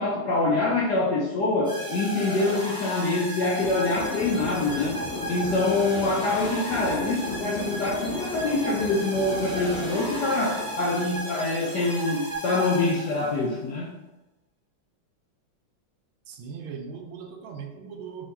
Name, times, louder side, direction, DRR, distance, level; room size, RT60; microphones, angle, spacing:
voice 1, 0.0-5.0 5.3-13.9, left 2 dB, 70° left, -3 dB, 1.0 m, -25 dB
sound 1, 1.6-13.5, right 1 dB, 5° right, 0.5 m, -35 dB
sound 2, 3.6-11.9, left 3 dB, 85° left, 1.8 m, -36 dB
voice 2, 16.3-18.3, right 6 dB, 75° right, 3 dB, 1.3 m, -39 dB
4.3 x 2.4 x 4.5 m, 1.0 s
omnidirectional pair, 2.4 m